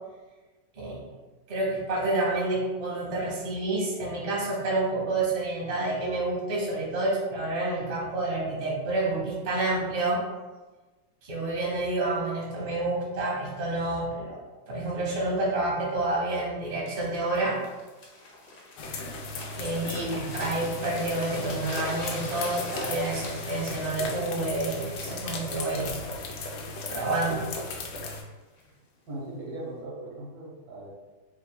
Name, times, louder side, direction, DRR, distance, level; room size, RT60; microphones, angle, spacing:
voice 1, 0.7-1.1 1.5-10.2 11.2-14.4 14.7-17.6 19.5-25.9 26.9-27.5, right 2 dB, 35° right, -5 dB, 1.1 m, -29 dB
sound 1, 16.9-28.7 29.3-29.5, left 2 dB, 70° left, 1.5 m, -43 dB
sound 2, 18.8-28.2, left 3 dB, 85° left, 1.3 m, -37 dB
voice 2, 19.9-20.4 29.1-30.9, right 1 dB, 75° right, -5 dB, 1.7 m, -38 dB
4.6 x 3.4 x 2.2 m, 1.2 s
omnidirectional pair, 1.9 m